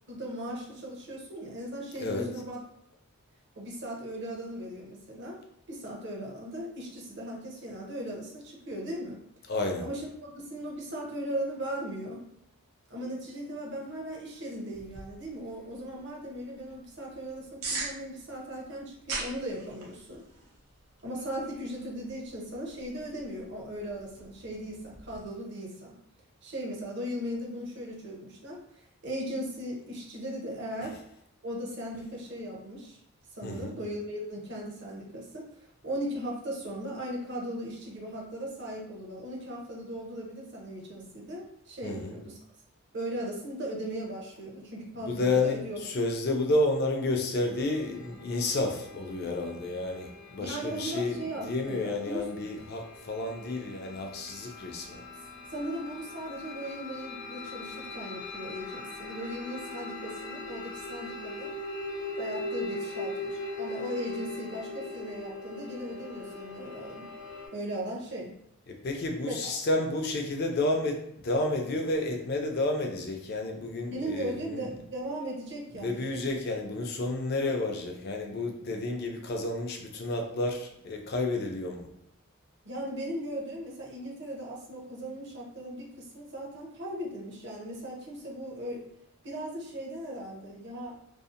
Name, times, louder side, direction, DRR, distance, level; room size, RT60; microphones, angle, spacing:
voice 1, 0.1-2.6 3.6-5.4 5.7-9.2 9.8-12.2 12.9-20.2 21.0-26.0 26.4-31.0 31.4-33.0 33.3-42.4 42.9-45.8 50.4-52.3 55.5-61.6 62.2-67.1 67.5-68.3 69.3-69.6 73.9-76.3 82.6-88.9 89.2-91.0, right 1 dB, 50° right, -2 dB, 0.6 m, -38 dB
voice 2, 9.5-9.9 33.4-33.7 41.8-42.1 45.0-51.2 51.4-55.0 68.7-71.0 71.2-74.6 75.8-81.9, left 2 dB, 45° left, 3 dB, 0.4 m, -30 dB
sound 1, 14.7-25.3, right 3 dB, 90° right, 0.7 m, -43 dB
sound 2, 47.5-67.5, left 2 dB, 70° left, 0.8 m, -41 dB
2.6 x 2.0 x 2.5 m, 0.73 s
head